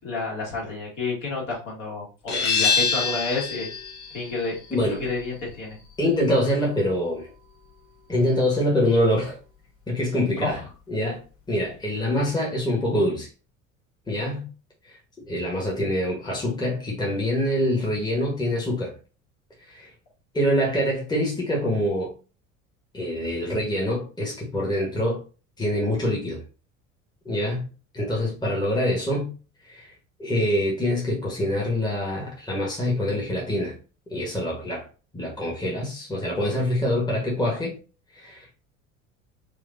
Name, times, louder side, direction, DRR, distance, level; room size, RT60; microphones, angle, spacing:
voice 1, 0.0-3.7 4.1-5.8 10.3-10.7, left 3 dB, 50° left, 2.1 m, -30 dB
sound 1, 2.3-7.7, left 5 dB, 65° left, 1.4 m, -28 dB
voice 2, 4.7-5.0 6.0-7.3 8.1-9.4 9.9-10.6 10.9-11.2 11.5-13.3 14.1-14.5 14.8-15.0 15.3-18.9 19.7-19.9 20.3-22.1 22.9-25.2 25.6-26.4 27.2-27.7 27.9-29.3 29.6-29.9 30.2-33.8 34.1-34.9 35.1-37.8 38.2-38.5, left 1 dB, 10° left, 1.4 m, -25 dB
4.9 x 2.5 x 2.7 m
figure-of-eight pair, 65°, 41 cm